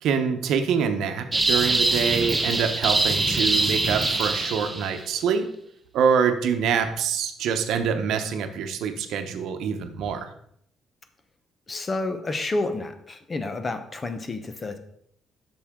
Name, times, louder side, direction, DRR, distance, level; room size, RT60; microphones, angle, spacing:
voice 1, 0.0-5.5 5.9-10.3, right 7 dB, 75° right, 7 dB, 0.9 m, -25 dB
sound 1, 1.3-5.0, right 2 dB, 15° right, 0.9 m, -23 dB
voice 2, 11.7-14.8, left 2 dB, 25° left, 9 dB, 0.8 m, -30 dB
8.4 x 6.1 x 3.7 m, 0.71 s
cardioid pair, 125°, 0 cm